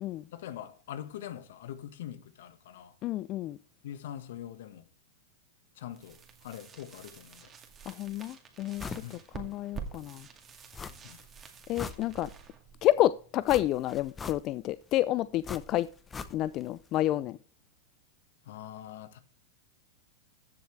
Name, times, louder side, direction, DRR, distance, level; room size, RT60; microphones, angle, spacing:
voice 1, 0.3-2.9 3.8-4.8 5.7-7.5 9.0-9.3 11.0-11.2 18.4-19.2, left 11 dB, 70° left, 1.4 m, -43 dB
voice 2, 3.0-3.6 7.9-10.3 11.7-12.3 12.8-15.9 16.3-17.4, left 14 dB, 40° left, 0.4 m, -29 dB
sound 1, 5.9-13.7, right 6 dB, 20° right, 2.2 m, -48 dB
sound 2, 8.8-9.1 9.5-9.6 10.7-11.2 11.6-12.5 13.5-14.7 15.4-16.7 17.0-17.1, left 5 dB, 15° left, 0.8 m, -42 dB
14.5 x 7.2 x 3.3 m
hypercardioid pair, 120°, 0 cm